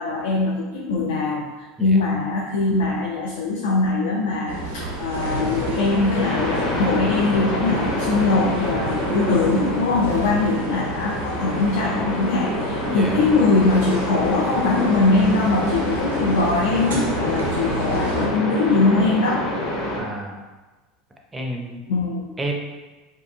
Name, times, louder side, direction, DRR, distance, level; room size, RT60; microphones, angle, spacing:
voice 1, 0.0-19.4 21.9-22.3, left 3 dB, 75° left, -2 dB, 0.3 m, -22 dB
sound 1, 4.5-18.3, right 1 dB, 90° right, 0.5 m, -30 dB
sound 2, 5.1-20.0, left 1 dB, 50° left, 0.9 m, -27 dB
voice 2, 12.9-13.2 19.9-20.4 21.3-21.8 22.4-22.5, right 1 dB, 20° right, 1 dB, 0.4 m, -30 dB
2.5 x 2.5 x 2.5 m, 1.2 s
hypercardioid pair, 85°, 0 cm